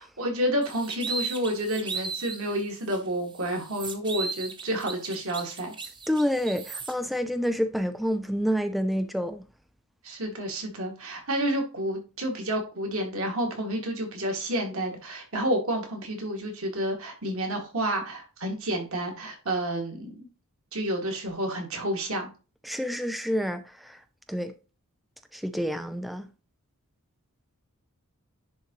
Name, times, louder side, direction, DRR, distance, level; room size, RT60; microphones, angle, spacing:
voice 1, 0.2-5.7 10.0-20.3 20.7-22.3, right 1 dB, 65° right, 2.2 m, -30 dB
sound 1, 0.6-2.4 2.9-3.0 3.4-6.9, right 4 dB, 20° right, 0.8 m, -36 dB
voice 2, 6.1-9.4 22.6-24.0 24.3-24.5 25.3-26.3, equal, ahead, 0.4 m, -28 dB
10.0 x 3.8 x 3.0 m
head